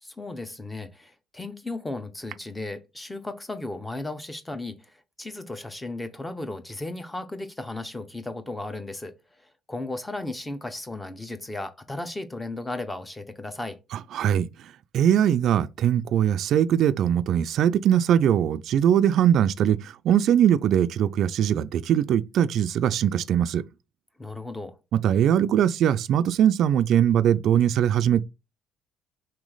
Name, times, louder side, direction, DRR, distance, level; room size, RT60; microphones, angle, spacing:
voice 1, 0.0-13.8 24.2-24.8, left 2 dB, 10° left, 0.7 m, -35 dB
voice 2, 13.9-23.6 24.9-28.2, right 10 dB, 60° right, 0.3 m, -21 dB
4.3 x 3.1 x 3.9 m
cardioid pair, 125°, 0 cm